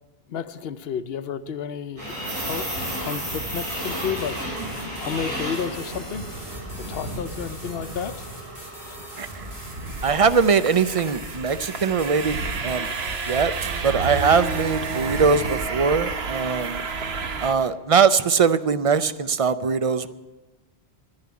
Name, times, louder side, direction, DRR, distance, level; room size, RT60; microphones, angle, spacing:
voice 1, 0.3-2.7 3.0-4.4 4.7-6.3 6.8-8.2 8.9-9.0, left 7 dB, 70° left, 12 dB, 0.9 m, -32 dB
sound 1, 2.0-16.0, right 1 dB, 90° right, 7.2 m, -35 dB
sound 2, 2.3-15.6, equal, 25° right, 3.2 m, -44 dB
voice 2, 9.2-9.5 10.0-12.9 13.3-16.8 17.4-20.1, right 5 dB, 45° right, 13 dB, 0.5 m, -21 dB
sound 3, 9.2-17.5, right 4 dB, 70° right, 1.2 m, -30 dB
10.5 x 10.5 x 9.4 m, 1.1 s
omnidirectional pair, 1.1 m